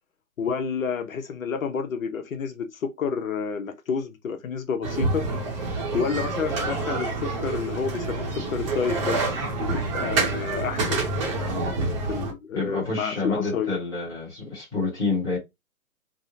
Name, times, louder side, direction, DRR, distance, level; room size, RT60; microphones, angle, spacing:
voice 1, 0.4-5.2 5.9-9.2 9.5-11.0 12.0-13.7, left 6 dB, 65° left, 0.7 m, -29 dB
sound 1, 4.8-12.3, right 3 dB, 20° right, 0.7 m, -27 dB
voice 2, 12.5-15.4, left 3 dB, 10° left, 1.0 m, -28 dB
3.6 x 2.0 x 2.6 m
hypercardioid pair, 140°, 43 cm